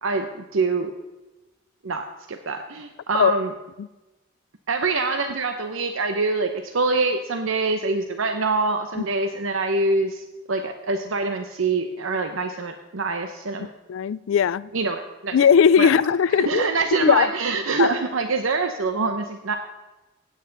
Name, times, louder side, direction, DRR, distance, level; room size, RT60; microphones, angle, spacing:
voice 1, 0.5-0.9 1.8-3.5 4.7-13.7 14.7-15.4 15.8-15.9 16.3-19.6, right 3 dB, 80° right, 7 dB, 0.7 m, -25 dB
voice 2, 13.9-14.7 15.3-16.7 17.0-17.3 17.8-17.9, left 7 dB, 75° left, 20 dB, 0.3 m, -18 dB
16.0 x 9.1 x 3.9 m, 1.1 s
head